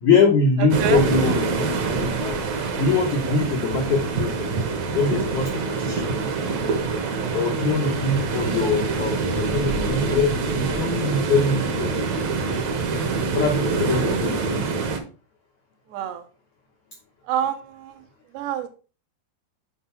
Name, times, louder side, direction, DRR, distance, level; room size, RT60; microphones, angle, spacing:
voice 1, 0.0-2.4 2.8-4.5 4.9-6.3 7.3-12.1 13.2-14.7, left 4 dB, 75° left, 1 dB, 1.7 m, -23 dB
sound 1, 0.7-15.0, right 4 dB, 65° right, 1.7 m, -25 dB
voice 2, 15.9-16.3 17.3-18.0 18.3-18.7, right 9 dB, 80° right, 6 dB, 2.9 m, -27 dB
7.8 x 4.6 x 4.5 m, 0.35 s
omnidirectional pair, 5.0 m